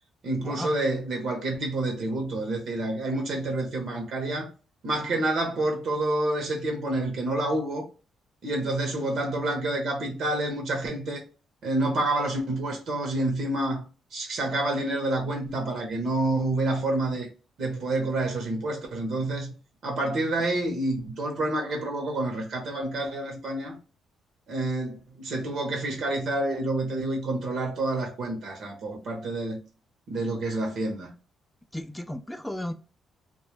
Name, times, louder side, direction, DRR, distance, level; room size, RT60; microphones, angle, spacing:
voice 1, 0.2-4.5 4.8-7.8 8.4-11.2 11.6-13.8 14.1-17.3 17.6-19.5 19.8-23.8 24.5-29.6 30.1-31.1, right 2 dB, 65° right, 0.7 m, -28 dB
voice 2, 31.7-32.7, left 1 dB, 5° left, 0.3 m, -34 dB
2.2 x 2.0 x 3.0 m
cardioid pair, 90°, 0 cm